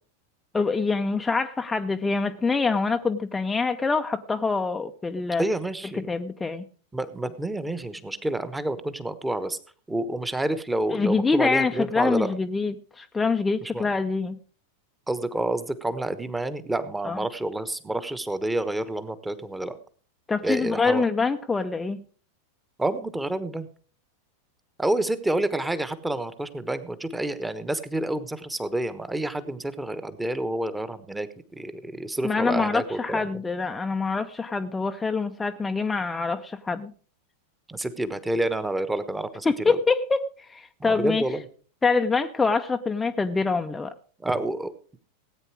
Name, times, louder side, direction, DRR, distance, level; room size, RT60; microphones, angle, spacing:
voice 1, 0.5-5.4 6.1-6.6 10.9-14.4 17.0-17.2 20.3-22.0 32.2-36.9 39.4-41.2 41.8-43.9, left 4 dB, 10° left, 7 dB, 0.6 m, -25 dB
voice 2, 5.4-6.1 6.9-9.6 9.9-12.3 13.6-13.9 15.1-19.8 20.4-21.0 22.8-23.7 24.8-31.3 31.6-33.3 37.7-39.8 40.8-41.4 44.2-44.7, right 1 dB, 5° right, 13 dB, 1.2 m, -28 dB
17.5 x 9.1 x 4.7 m, 0.41 s
figure-of-eight pair, 90°, 0 cm